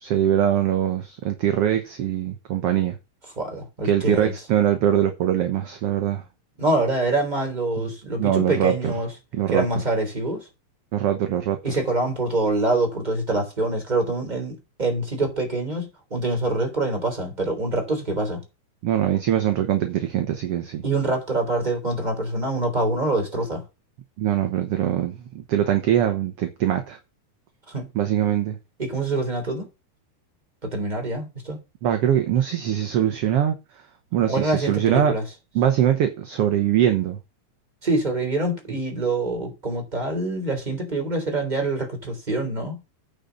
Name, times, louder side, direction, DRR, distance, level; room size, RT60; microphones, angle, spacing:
voice 1, 0.0-3.0 3.8-6.2 7.8-7.9 8.2-8.9 9.3-9.7 10.9-11.6 18.8-20.8 24.2-27.0 28.0-28.6 31.8-33.6 34.1-35.1 35.6-37.2, right 10 dB, 65° right, 1.8 m, -22 dB
voice 2, 3.4-4.3 6.6-9.1 9.5-10.5 11.6-18.4 20.8-23.6 27.7-27.9 28.8-29.7 30.6-31.6 34.3-35.2 37.8-42.8, right 2 dB, 15° right, 3.4 m, -25 dB
9.2 x 5.3 x 7.0 m
omnidirectional pair, 3.3 m